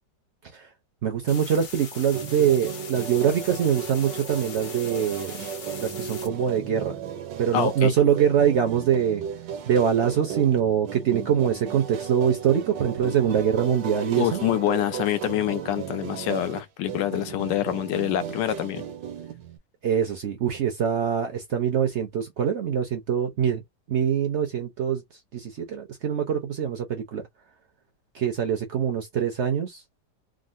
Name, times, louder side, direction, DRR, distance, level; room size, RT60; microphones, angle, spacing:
voice 1, 1.0-5.4 5.8-7.0 7.4-9.2 9.7-14.4 19.8-23.6 23.9-25.0 25.3-27.2 28.1-29.8, right 8 dB, 70° right, 0.6 m, -24 dB
sound 1, 1.3-6.3, left 6 dB, 65° left, 1.5 m, -41 dB
sound 2, 2.1-19.6, right 8 dB, 85° right, 1.4 m, -35 dB
voice 2, 7.5-8.0 14.2-18.8, left 13 dB, 85° left, 1.3 m, -26 dB
3.7 x 2.0 x 2.5 m
omnidirectional pair, 1.9 m